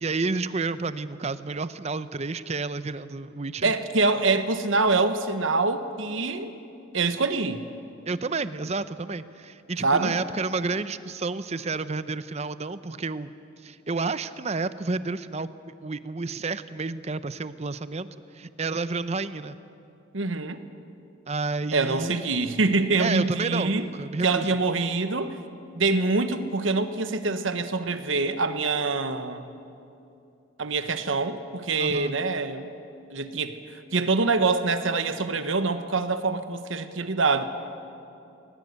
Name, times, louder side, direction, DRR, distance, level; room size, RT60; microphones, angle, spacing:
voice 1, 0.0-3.7 8.1-13.3 13.6-15.5 15.8-18.1 18.3-19.6 21.3-22.2 23.0-24.5 31.8-32.2, right 3 dB, 35° right, 14 dB, 0.6 m, -30 dB
voice 2, 3.6-6.5 6.9-7.7 9.8-10.2 20.1-20.6 21.7-23.9 24.2-25.4 25.7-29.4 30.6-32.7 33.1-37.4, right 3 dB, 80° right, 10 dB, 1.2 m, -25 dB
20.5 x 19.0 x 8.2 m, 2.7 s
head